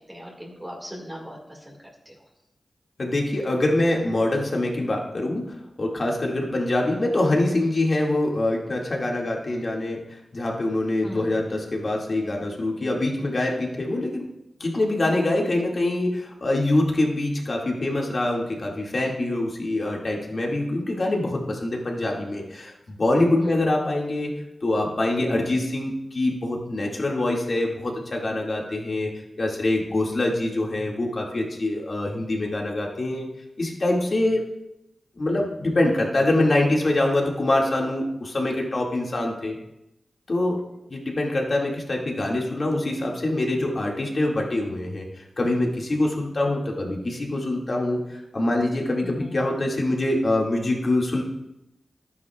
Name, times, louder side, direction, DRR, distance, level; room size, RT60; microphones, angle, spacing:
voice 1, 0.0-1.8 2.1-2.2 11.0-11.4 23.4-23.6 46.4-46.5 49.0-49.4, equal, 15° right, -2 dB, 1.9 m, -39 dB
voice 2, 3.0-5.4 5.8-10.0 10.3-14.3 14.6-24.3 24.6-29.1 29.4-33.3 33.6-34.4 35.2-39.6 40.3-40.6 40.9-45.1 45.4-48.0 48.3-51.2, left 1 dB, 55° left, -1 dB, 2.1 m, -24 dB
12.0 x 9.5 x 2.4 m, 0.87 s
cardioid pair, 50°, 0 cm